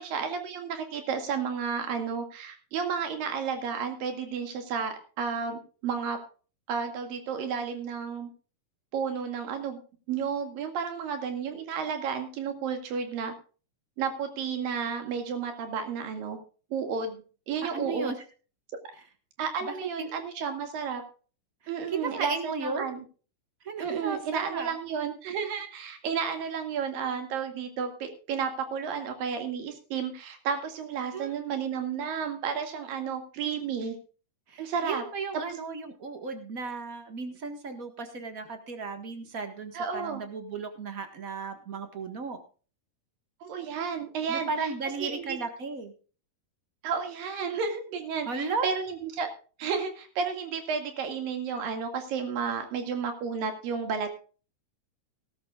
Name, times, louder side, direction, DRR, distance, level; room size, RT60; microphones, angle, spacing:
voice 1, 0.0-6.2 6.7-8.3 8.9-9.8 10.1-13.3 14.0-16.4 16.7-17.2 17.5-18.1 19.4-21.0 21.7-23.0 23.8-34.0 34.6-35.0 39.7-40.2 43.4-44.7 45.0-45.4 46.8-49.3 49.6-54.1, right 6 dB, 85° right, 6 dB, 3.9 m, -32 dB
voice 2, 17.7-18.1 19.6-20.1 21.9-22.9 23.6-24.7 31.1-31.3 34.5-42.4 44.3-45.9 48.3-48.7, right 4 dB, 45° right, 6 dB, 1.1 m, -35 dB
18.5 x 12.5 x 2.4 m, 0.37 s
omnidirectional pair, 3.9 m